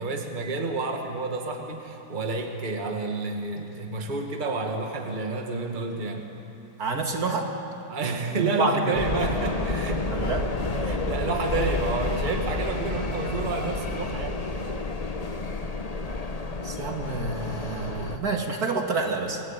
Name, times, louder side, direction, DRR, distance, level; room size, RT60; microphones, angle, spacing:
voice 1, 0.0-6.2 7.9-10.1 10.6-14.7 18.0-18.2, right 3 dB, 25° right, 2 dB, 1.9 m, -30 dB
voice 2, 6.8-7.5 8.3-9.0 10.1-10.5 16.6-19.4, right 3 dB, 55° right, 2 dB, 2.3 m, -28 dB
sound 1, 8.9-18.2, left 2 dB, 25° left, 0.9 m, -30 dB
26.0 x 19.0 x 8.9 m, 2.9 s
omnidirectional pair, 2.0 m